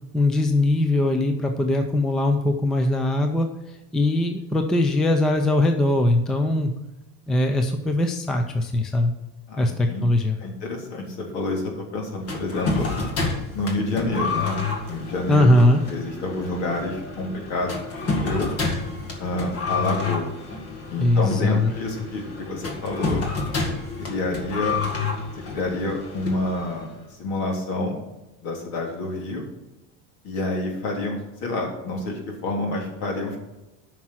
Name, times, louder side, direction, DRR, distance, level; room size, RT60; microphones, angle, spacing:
voice 1, 0.1-6.7 7.3-9.1 9.6-10.4 15.3-15.8 21.0-21.7, left 1 dB, ahead, 5 dB, 0.4 m, -21 dB
voice 2, 9.5-10.0 10.4-12.9 13.5-14.6 14.9-18.5 19.2-20.3 20.9-23.2 24.0-24.8 25.5-26.9 27.2-28.0 28.4-29.4 30.2-33.4, left 2 dB, 60° left, 0 dB, 3.4 m, -28 dB
sound 1, 12.3-27.0, left 4 dB, 35° left, 1.8 m, -29 dB
9.7 x 6.0 x 6.2 m, 0.98 s
cardioid pair, 160°, 41 cm